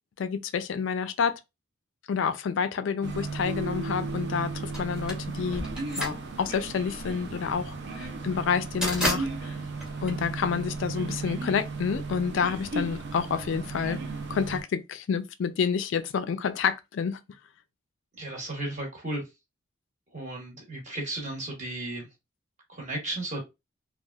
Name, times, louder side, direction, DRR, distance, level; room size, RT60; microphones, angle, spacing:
voice 1, 0.2-1.4 2.1-5.7 6.0-9.6 10.0-14.0 14.3-17.2, left 6 dB, 65° left, 0.3 m, -29 dB
sound 1, 3.0-14.6, right 3 dB, 55° right, 0.4 m, -35 dB
sound 2, 4.7-10.9, equal, 5° right, 0.8 m, -33 dB
voice 2, 18.2-19.3 20.1-22.1 22.7-23.4, right 2 dB, 35° right, 1.2 m, -34 dB
3.3 x 2.3 x 2.2 m
head